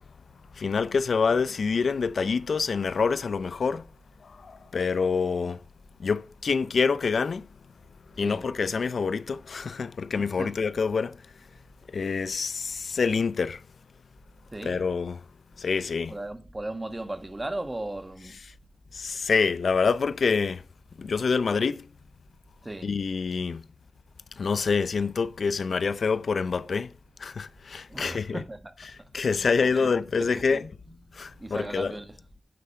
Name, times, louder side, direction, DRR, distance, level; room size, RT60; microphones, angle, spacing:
voice 1, 0.6-3.9 4.2-5.6 6.0-7.5 8.2-11.2 11.9-13.6 14.7-15.2 15.6-16.1 18.9-20.6 21.0-21.9 22.8-23.6 24.4-26.9 27.2-28.4 29.1-30.7 31.1-31.9, left 5 dB, 85° left, 0.5 m, -26 dB
voice 2, 10.2-10.7 14.5-14.8 16.1-18.4 22.6-22.9 27.9-29.9 30.2-30.9 31.4-32.2, right 1 dB, 20° right, 1.6 m, -37 dB
9.5 x 8.6 x 4.4 m
wide cardioid pair, 115°, 0 cm